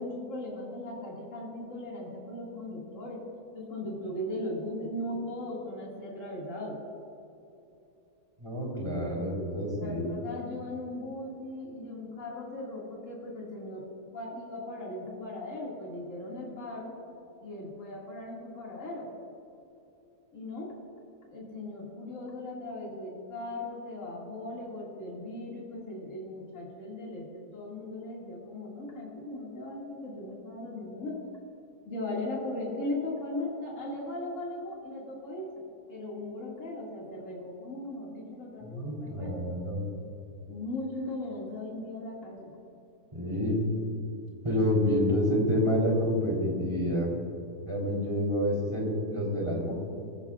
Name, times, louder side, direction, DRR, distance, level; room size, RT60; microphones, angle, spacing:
voice 1, 0.0-3.2 3.5-6.8 9.8-17.0 17.4-19.1 20.3-20.7 21.3-31.2 31.9-39.3 40.5-42.5, left 1 dB, 50° left, -5 dB, 2.6 m, -38 dB
voice 2, 8.4-10.1 38.6-39.8 43.1-43.6 44.4-47.1 47.7-49.7, equal, 15° right, -3 dB, 3.6 m, -28 dB
22.5 x 15.5 x 2.4 m, 2.8 s
omnidirectional pair, 1.7 m